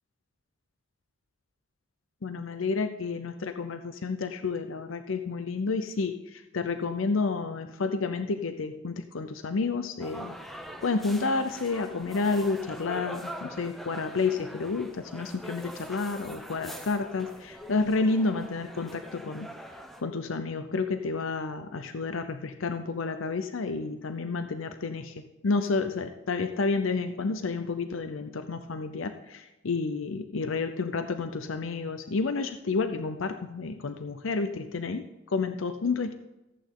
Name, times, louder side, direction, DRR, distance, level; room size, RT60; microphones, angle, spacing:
voice 1, 2.2-10.4 10.8-19.5 20.0-25.1 25.4-36.1, left 4 dB, 85° left, 9 dB, 0.6 m, -30 dB
sound 1, 10.0-20.0, equal, ahead, 0.8 m, -43 dB
14.5 x 8.5 x 3.8 m, 1.0 s
head